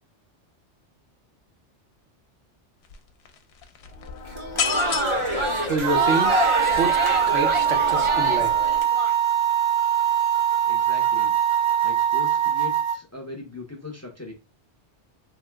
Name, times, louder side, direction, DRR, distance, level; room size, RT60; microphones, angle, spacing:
sound 1, 2.8-3.0 3.3-8.8, left 6 dB, 70° left, 0.8 m, -34 dB
Crowd, 4.3-9.1, equal, 35° right, 0.6 m, -26 dB
voice 1, 5.6-7.0 7.3-8.5, right 3 dB, 90° right, 1.1 m, -27 dB
sound 2, 5.8-13.0, right 10 dB, 65° right, 1.0 m, -22 dB
voice 2, 10.7-11.4 11.8-14.3, left 2 dB, 20° left, 0.4 m, -39 dB
3.1 x 2.0 x 3.3 m
omnidirectional pair, 1.2 m